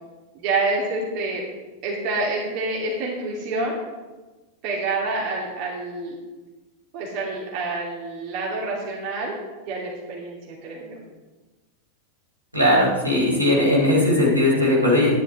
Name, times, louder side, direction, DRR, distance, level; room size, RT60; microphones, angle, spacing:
voice 1, 0.3-1.4 1.8-3.8 4.6-6.2 6.9-9.3 9.7-11.0, right 3 dB, 45° right, -3 dB, 2.7 m, -27 dB
voice 2, 12.5-15.1, left 1 dB, 90° right, -5 dB, 4.2 m, -18 dB
13.0 x 10.5 x 3.6 m, 1.2 s
figure-of-eight pair, 90°, 0 cm